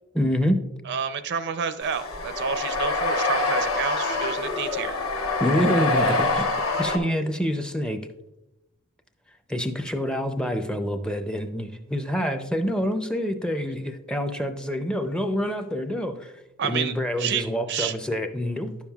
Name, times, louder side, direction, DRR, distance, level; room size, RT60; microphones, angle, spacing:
voice 1, 0.1-0.6 5.4-8.0 9.5-16.3 16.6-18.8, equal, 5° left, 7 dB, 0.4 m, -27 dB
voice 2, 0.9-5.0 16.6-17.9, right 7 dB, 55° right, 11 dB, 0.4 m, -29 dB
sound 1, 1.8-7.0, left 3 dB, 85° left, 1.2 m, -25 dB
10.0 x 7.1 x 2.3 m, 0.91 s
head